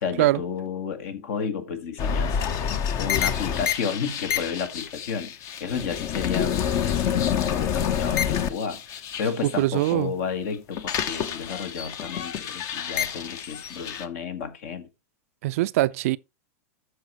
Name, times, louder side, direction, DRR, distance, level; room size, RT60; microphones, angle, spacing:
voice 1, 0.0-2.7 3.0-5.3 5.6-14.9, left 6 dB, 60° left, 1.7 m, -32 dB
sound 1, 2.0-9.9 10.3-14.1, left 8 dB, 40° left, 0.9 m, -28 dB
voice 2, 9.6-10.1 15.4-16.2, right 17 dB, 60° right, 0.4 m, -22 dB
13.0 x 4.9 x 3.1 m
hypercardioid pair, 105°, 9 cm